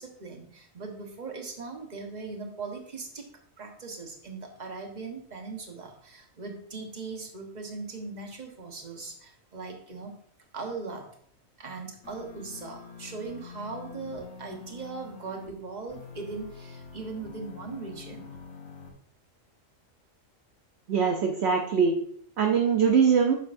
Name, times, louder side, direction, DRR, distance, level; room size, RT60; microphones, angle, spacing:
voice 1, 0.0-3.3 3.6-10.1 10.5-11.1 11.6-18.4, right 4 dB, 35° right, 2 dB, 1.2 m, -39 dB
sound 1, 12.0-15.5 15.9-18.9, left 5 dB, 60° left, 1.5 m, -46 dB
voice 2, 20.9-21.9 22.4-23.4, right 6 dB, 60° right, 3 dB, 0.9 m, -22 dB
9.0 x 6.5 x 2.6 m, 0.63 s
omnidirectional pair, 1.4 m